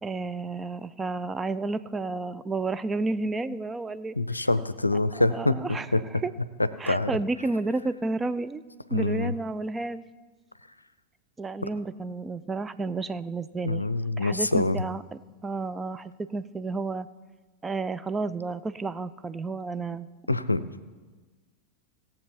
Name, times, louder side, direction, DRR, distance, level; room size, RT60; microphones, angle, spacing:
voice 1, 0.0-4.2 5.3-5.9 6.2-6.3 6.8-8.6 8.9-10.0 11.4-13.8 14.2-15.0 15.4-17.1 17.6-20.1, right 3 dB, 15° right, 13 dB, 0.4 m, -31 dB
voice 2, 4.1-6.0 6.9-7.1 8.9-9.3 13.6-14.8 20.3-20.6, left 2 dB, 85° left, 14 dB, 0.5 m, -25 dB
18.0 x 7.5 x 4.5 m, 1.3 s
figure-of-eight pair, 90°, 0 cm